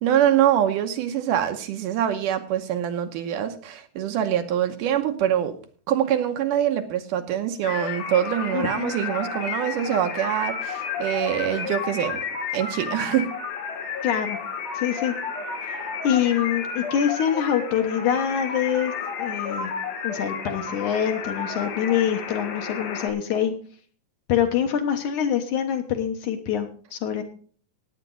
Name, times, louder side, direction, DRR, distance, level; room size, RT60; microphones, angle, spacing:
voice 1, 0.0-5.6 5.9-12.2 12.5-13.3, right 10 dB, 75° right, 7 dB, 2.4 m, -24 dB
sound 1, 7.6-23.1, left 6 dB, 85° left, 3.8 m, -32 dB
voice 2, 8.5-8.9 14.0-14.4 14.7-15.1 16.0-18.9 19.2-19.7 20.0-23.5 24.3-27.2, left 9 dB, 65° left, 5 dB, 2.5 m, -25 dB
17.5 x 8.9 x 4.0 m, 0.44 s
omnidirectional pair, 4.0 m